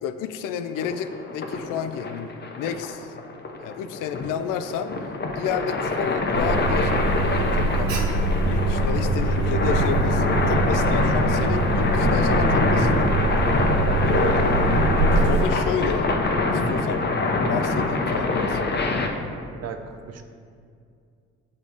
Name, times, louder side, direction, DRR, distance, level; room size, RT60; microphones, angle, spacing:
voice 1, 0.0-3.1 3.6-4.9 5.4-7.9 8.4-12.9 14.0-16.1 16.5-17.1 17.4-18.6, left 7 dB, 70° left, 10 dB, 0.5 m, -31 dB
sound 1, 0.8-19.1, left 3 dB, 30° left, 0.8 m, -24 dB
Alarm, 6.3-15.5, right 3 dB, 90° right, 0.6 m, -24 dB
voice 2, 19.6-20.2, right 6 dB, 50° right, 7 dB, 0.6 m, -36 dB
6.8 x 4.2 x 3.6 m, 2.3 s
hypercardioid pair, 50°, 34 cm